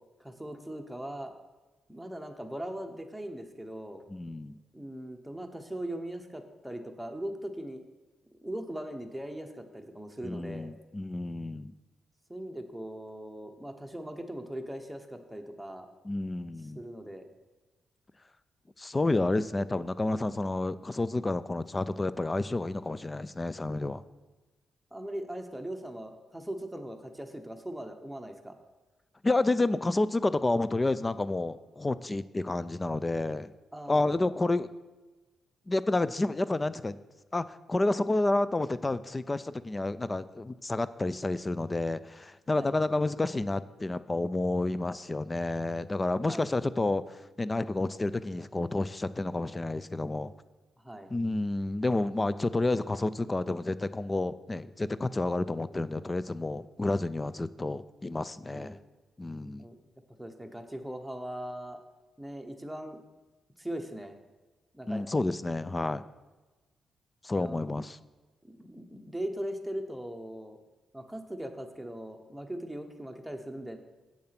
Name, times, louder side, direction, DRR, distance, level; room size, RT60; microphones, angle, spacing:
voice 1, 0.2-1.3 1.9-4.0 4.7-7.8 8.4-10.7 12.3-15.9 16.7-17.3 24.9-28.6 33.7-34.3 42.5-42.7 46.3-46.5 50.8-51.1 58.5-58.8 59.6-59.8 60.2-61.8 62.2-63.0 63.6-64.1 64.7-65.0 67.3-67.6 68.4-70.6 70.9-73.8, right 1 dB, 5° right, 4 dB, 1.0 m, -40 dB
voice 2, 4.1-4.6 10.2-11.7 16.0-16.8 18.8-24.0 29.2-33.5 33.9-34.7 35.7-37.0 37.3-47.0 47.4-50.3 51.1-58.8 59.2-59.7 64.9-66.0 67.2-68.0, left 2 dB, 20° left, 15 dB, 0.4 m, -30 dB
7.9 x 7.2 x 5.9 m, 1.2 s
cardioid pair, 105°, 0 cm